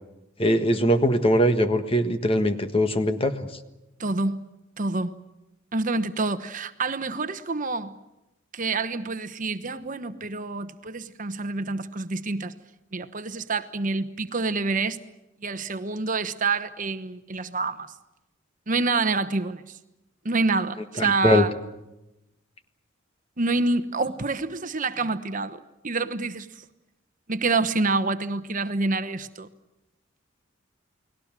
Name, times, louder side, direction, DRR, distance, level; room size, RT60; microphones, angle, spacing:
voice 1, 0.4-3.3 21.0-21.4, equal, 30° left, 1.5 m, -21 dB
voice 2, 4.0-4.4 4.8-5.1 5.7-7.9 8.5-12.5 12.9-15.0 15.4-17.9 18.7-19.8 20.2-21.5 23.4-26.6 27.3-29.5, right 3 dB, 40° right, 1.1 m, -27 dB
30.0 x 20.0 x 7.5 m
head